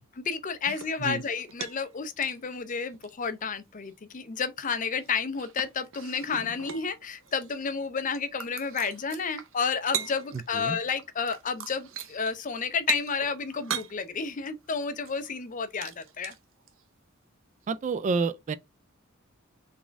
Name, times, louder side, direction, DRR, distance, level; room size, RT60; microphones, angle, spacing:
voice 1, 0.2-16.3, left 5 dB, 40° left, 0.6 m, -31 dB
sound 1, 0.7-2.0 2.2-3.4 3.9-4.0 4.9-7.8 8.0-10.6 10.9-16.8 17.6-17.7, right 8 dB, 65° right, 0.7 m, -40 dB
voice 2, 17.7-18.5, right 4 dB, 35° right, 0.3 m, -29 dB
4.1 x 3.5 x 3.4 m
head